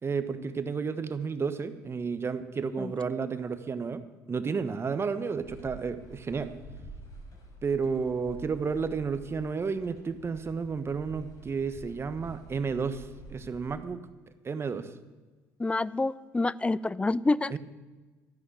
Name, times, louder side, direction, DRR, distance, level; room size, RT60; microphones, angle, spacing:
voice 1, 0.0-4.0 4.3-6.5 7.6-14.0 14.4-14.9 17.5-17.6, right 5 dB, 35° right, 11 dB, 1.3 m, -32 dB
sound 1, 5.4-13.7, right 2 dB, 50° left, 4.3 m, -48 dB
voice 2, 15.6-17.5, left 2 dB, 15° left, 20 dB, 0.5 m, -27 dB
13.5 x 9.6 x 6.7 m, 1.3 s
hypercardioid pair, 65°, 8 cm